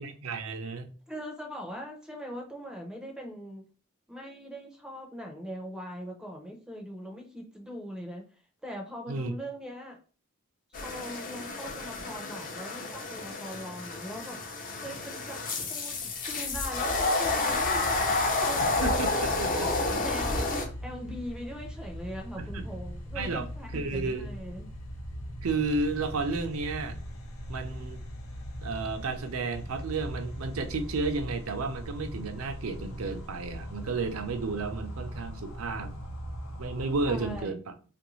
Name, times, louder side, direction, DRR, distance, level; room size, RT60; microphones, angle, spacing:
voice 1, 0.0-0.9 9.1-9.3 18.6-19.7 22.4-22.7 23.2-23.5 23.7-24.3 25.4-27.0 27.5-28.0 28.6-36.0 36.6-37.7, right 3 dB, 75° right, 8 dB, 0.5 m, -32 dB
voice 2, 1.1-3.6 4.1-8.2 8.6-10.0 10.7-14.4 14.8-15.4 15.7-19.3 19.6-24.7 37.1-37.6, equal, 5° right, 1 dB, 0.5 m, -41 dB
sound 1, 10.7-20.7, left 3 dB, 40° left, 0.6 m, -30 dB
sound 2, 17.5-37.4, equal, 80° left, 0.7 m, -40 dB
3.0 x 2.5 x 3.0 m, 0.37 s
head